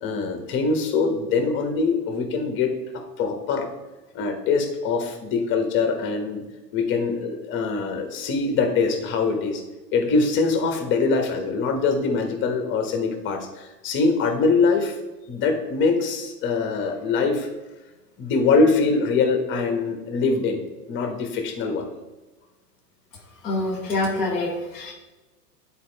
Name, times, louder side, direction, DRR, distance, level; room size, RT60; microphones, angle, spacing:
voice 1, 0.0-3.7 4.1-6.4 6.7-9.6 9.9-15.0 15.3-17.5 18.2-20.6 20.9-21.9, left 4 dB, 25° left, 5 dB, 1.1 m, -23 dB
voice 2, 23.4-24.9, left 2 dB, ahead, -12 dB, 0.3 m, -26 dB
9.3 x 4.4 x 4.4 m, 1.1 s
hypercardioid pair, 135°, 49 cm